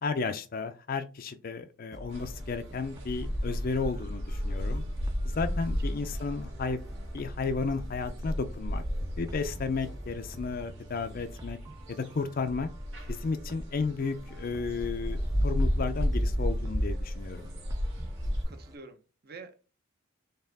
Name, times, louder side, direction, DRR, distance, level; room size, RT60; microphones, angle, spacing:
voice 1, 0.0-4.8 5.2-6.8 7.1-8.8 9.2-11.6 11.9-12.7 13.1-17.5, left 4 dB, 45° left, 8 dB, 0.4 m, -33 dB
sound 1, 1.9-18.8, right 1 dB, 15° right, 0.4 m, -49 dB
sound 2, 2.1-18.4, equal, 70° right, 1.5 m, -33 dB
voice 2, 18.5-19.6, right 4 dB, 50° right, 7 dB, 0.8 m, -48 dB
4.4 x 3.4 x 3.4 m, 0.33 s
head